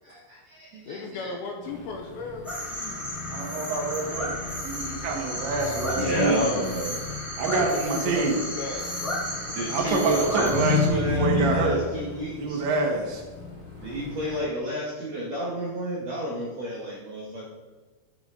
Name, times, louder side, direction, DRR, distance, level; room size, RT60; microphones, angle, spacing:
voice 1, 0.0-1.3 6.0-7.0 9.5-12.6 13.8-17.5, equal, 65° right, -4 dB, 1.6 m, -31 dB
voice 2, 0.9-3.3 5.6-6.6 7.6-9.2, left 4 dB, 80° left, 2 dB, 2.3 m, -36 dB
sound 1, 1.6-14.4, left 5 dB, 30° left, 3.3 m, -33 dB
sound 2, 2.4-10.9, equal, ahead, 1.1 m, -33 dB
voice 3, 3.3-6.7 7.4-8.4 9.7-11.8 12.4-13.2, right 4 dB, 85° right, 1 dB, 3.8 m, -27 dB
10.5 x 7.9 x 3.8 m, 1.3 s
omnidirectional pair, 5.0 m